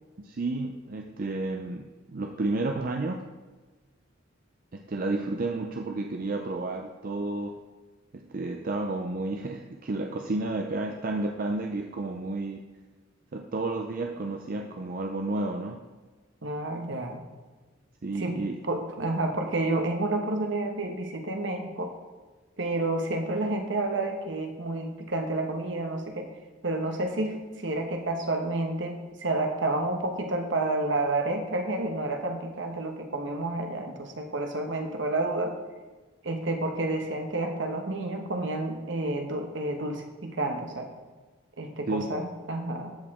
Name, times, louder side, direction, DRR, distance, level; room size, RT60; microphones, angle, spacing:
voice 1, 0.2-3.2 4.7-7.6 8.1-12.6 13.3-15.8 18.0-18.6 41.9-42.1, right 2 dB, 45° right, 3 dB, 0.5 m, -31 dB
voice 2, 16.4-17.2 18.1-18.4 18.6-21.9 22.6-26.3 26.6-35.5 36.2-40.9 41.6-43.0, right 2 dB, 65° right, 4 dB, 1.1 m, -30 dB
13.5 x 5.0 x 3.6 m, 1.3 s
head